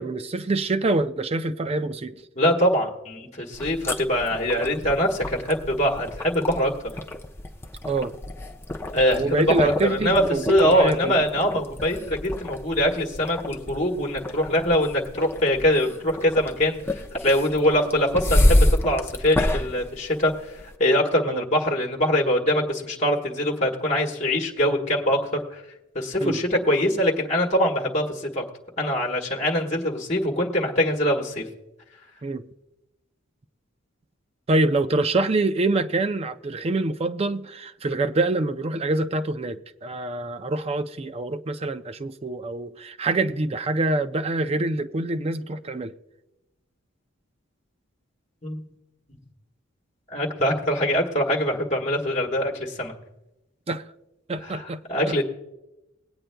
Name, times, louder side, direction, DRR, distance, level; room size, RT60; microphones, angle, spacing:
voice 1, 0.0-2.2 7.9-8.1 9.2-11.2 21.3-21.4 26.2-26.4 32.2-32.4 34.5-45.9 53.7-53.8 54.3-55.2, right 2 dB, 30° right, 0.4 m, -25 dB
voice 2, 2.4-6.7 8.9-25.6 25.9-28.4 28.8-31.5 48.4-48.6 50.1-52.9 54.4-55.2, equal, 35° left, 1.4 m, -23 dB
sound 1, 3.5-20.7, left 1 dB, 10° left, 0.6 m, -28 dB
21.5 x 8.8 x 2.2 m
head